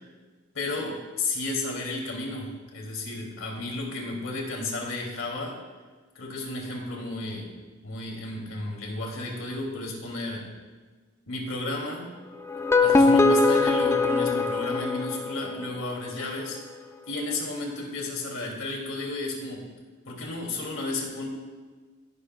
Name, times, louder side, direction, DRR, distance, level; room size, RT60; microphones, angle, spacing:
voice 1, 0.5-5.6 6.1-7.5 7.8-10.5 11.3-12.1 12.8-16.6 17.1-19.6 20.1-21.3, left 2 dB, 80° left, 0 dB, 2.5 m, -33 dB
sound 1, 12.5-15.6, left 3 dB, 15° left, 0.4 m, -21 dB
16.0 x 10.0 x 2.2 m, 1.4 s
head